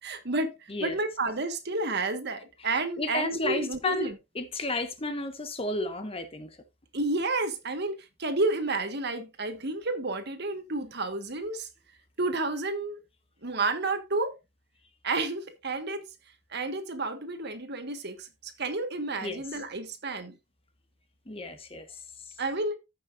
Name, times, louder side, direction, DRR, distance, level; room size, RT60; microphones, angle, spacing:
voice 1, 0.0-4.2 6.9-11.7 12.2-13.0 13.4-14.3 15.0-16.0 16.5-20.3 22.4-22.8, right 2 dB, 55° right, 1.6 m, -31 dB
voice 2, 3.0-4.1 4.3-6.5 19.2-19.4 21.3-21.8, left 2 dB, 30° left, 1.3 m, -32 dB
15.0 x 6.1 x 2.6 m
head